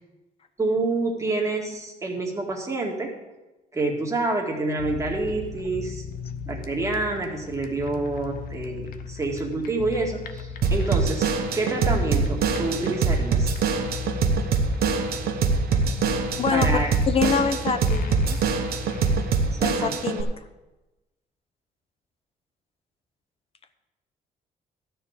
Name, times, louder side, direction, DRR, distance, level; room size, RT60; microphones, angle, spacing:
voice 1, 0.6-3.1 3.7-6.0 6.5-13.5 16.5-16.9 19.5-19.9, right 2 dB, 20° right, 0 dB, 2.0 m, -28 dB
sound 1, 4.8-19.5, left 6 dB, 70° left, 0.8 m, -37 dB
Drum kit / Drum, 10.6-20.2, right 5 dB, 85° right, 1.2 m, -24 dB
voice 2, 16.4-16.7 17.1-18.4 19.6-20.3, left 6 dB, 40° left, 9 dB, 0.9 m, -25 dB
13.0 x 4.6 x 8.4 m, 1.1 s
cardioid pair, 135°, 16 cm